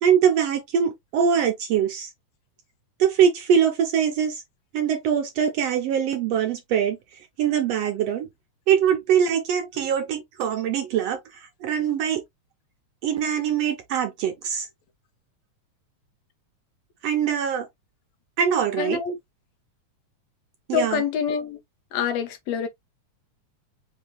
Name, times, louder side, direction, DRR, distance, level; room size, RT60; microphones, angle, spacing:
voice 1, 0.0-2.1 3.0-4.4 4.7-7.0 7.4-8.3 8.7-12.2 13.0-14.7 17.0-17.7 18.4-19.0 20.7-21.0, right 8 dB, 75° right, 1.6 m, -23 dB
voice 2, 18.8-19.2 20.7-21.6 21.9-22.7, left 7 dB, 75° left, 1.9 m, -26 dB
5.5 x 2.9 x 3.0 m
omnidirectional pair, 3.4 m